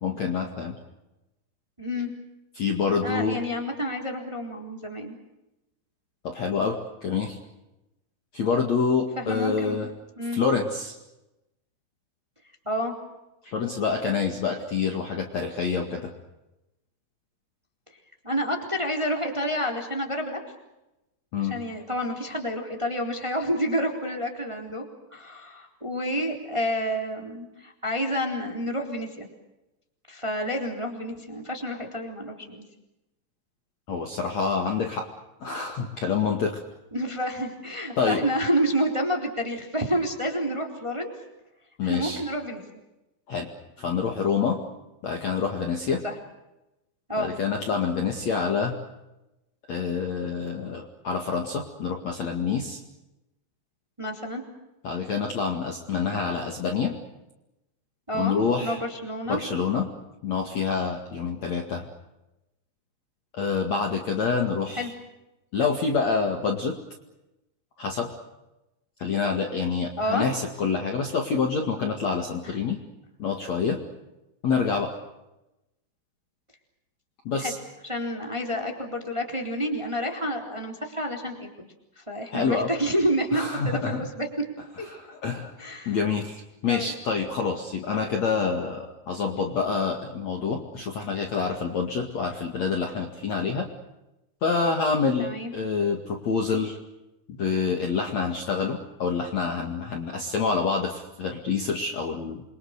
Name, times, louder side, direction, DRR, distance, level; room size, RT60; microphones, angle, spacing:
voice 1, 0.0-0.8 2.5-3.4 6.2-7.4 8.3-9.9 10.3-10.9 13.4-16.1 21.3-21.6 33.9-35.1 35.4-36.6 38.0-38.2 41.8-42.2 43.3-43.5 43.8-44.6 45.0-46.0 47.2-48.7 49.7-52.8 54.8-56.9 58.1-58.8 59.3-59.9 60.2-61.9 63.4-64.9 65.5-66.8 67.8-68.1 69.0-72.8 73.2-73.8 74.4-74.9 77.2-77.6 82.3-82.7 83.3-84.1 84.9-85.6 85.9-93.7 94.4-96.8 97.3-102.4, left 5 dB, 45° left, 2 dB, 2.7 m, -27 dB
voice 2, 1.8-2.1 3.0-5.2 9.1-9.8 10.2-10.4 12.6-12.9 18.2-20.4 21.4-24.8 25.1-29.2 30.1-32.6 36.9-41.1 41.9-42.6 46.0-46.1 47.1-47.3 54.0-54.4 58.1-58.4 58.6-59.4 64.7-64.9 70.0-70.3 72.4-72.6 77.4-77.5 77.8-81.5 82.0-83.8 84.2-84.3 84.8-84.9 85.6-86.0 86.7-86.9 95.2-95.5, equal, 5° right, 2 dB, 3.0 m, -29 dB
28.5 x 24.5 x 6.7 m, 0.94 s
omnidirectional pair, 5.4 m